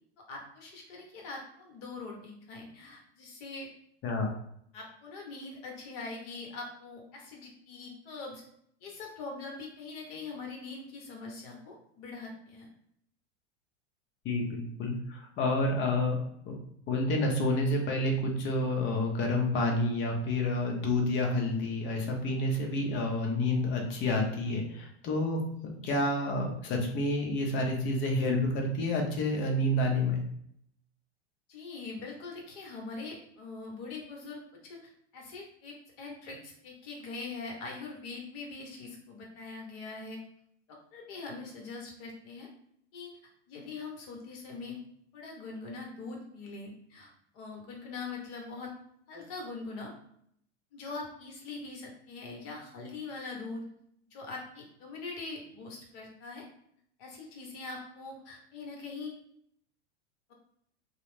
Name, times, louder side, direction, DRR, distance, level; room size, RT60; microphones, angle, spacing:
voice 1, 0.2-3.7 4.7-8.4 8.8-12.7 31.5-40.2 40.7-42.5 42.9-43.2 43.5-44.8 45.1-48.7 49.1-49.9 50.7-53.6 54.1-56.4 57.0-59.1, left 3 dB, 55° left, 0 dB, 1.1 m, -42 dB
voice 2, 4.0-4.3 14.2-16.2 16.5-16.6 16.9-30.2, left 1 dB, 35° left, 2 dB, 0.7 m, -29 dB
2.4 x 2.0 x 3.2 m, 0.69 s
hypercardioid pair, 100°, 35 cm